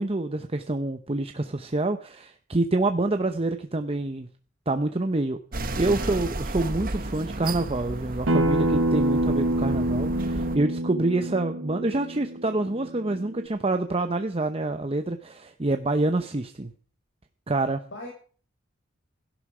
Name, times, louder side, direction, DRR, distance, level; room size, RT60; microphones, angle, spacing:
voice 1, 0.0-4.3 4.7-5.4 5.8-16.7 17.5-17.8, right 2 dB, 30° right, 7 dB, 0.8 m, -27 dB
sound 1, 5.5-10.6, right 2 dB, 45° right, 1.4 m, -33 dB
voice 2, 6.0-6.3 17.8-18.1, left 2 dB, 70° left, -2 dB, 6.1 m, -39 dB
Acoustic guitar, 8.3-13.5, right 1 dB, 85° right, 1.3 m, -27 dB
16.5 x 12.0 x 4.9 m, 0.43 s
head